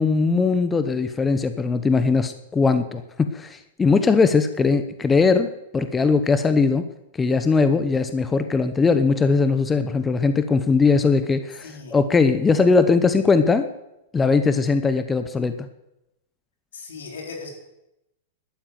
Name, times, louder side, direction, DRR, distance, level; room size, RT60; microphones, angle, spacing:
voice 1, 0.0-6.9 7.2-13.7 14.1-15.5, left 4 dB, 15° left, 10 dB, 0.9 m, -20 dB
voice 2, 11.6-12.0 16.7-17.5, left 4 dB, 80° left, 2 dB, 4.0 m, -37 dB
12.0 x 9.8 x 9.5 m, 0.89 s
hypercardioid pair, 120°, 0 cm